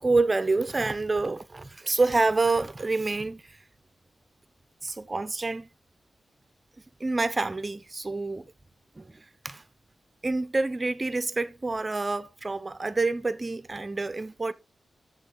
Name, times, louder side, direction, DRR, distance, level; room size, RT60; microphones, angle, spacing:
voice 1, 0.0-3.6 4.8-5.7 7.0-8.5 9.0-9.6 10.2-14.5, right 3 dB, 25° right, 0.6 m, -27 dB
9.5 x 7.0 x 3.8 m
wide cardioid pair, 155°, 0 cm